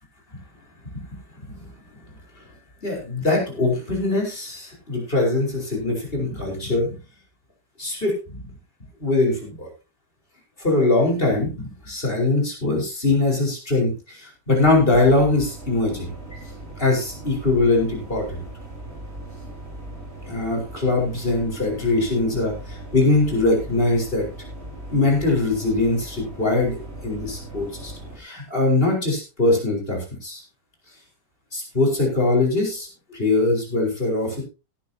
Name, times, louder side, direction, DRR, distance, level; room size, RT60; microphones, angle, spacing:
voice 1, 1.4-1.7 2.8-7.0 7.8-8.4 9.0-9.7 10.6-16.4 16.8-18.4 20.3-24.3 24.9-26.8 27.0-27.9 28.2-30.4 31.5-34.4, left 2 dB, 30° left, 0 dB, 4.9 m, -22 dB
sound 1, 14.6-28.2, right 2 dB, 35° right, 5.2 m, -39 dB
17.5 x 11.0 x 2.8 m, 0.30 s
omnidirectional pair, 1.8 m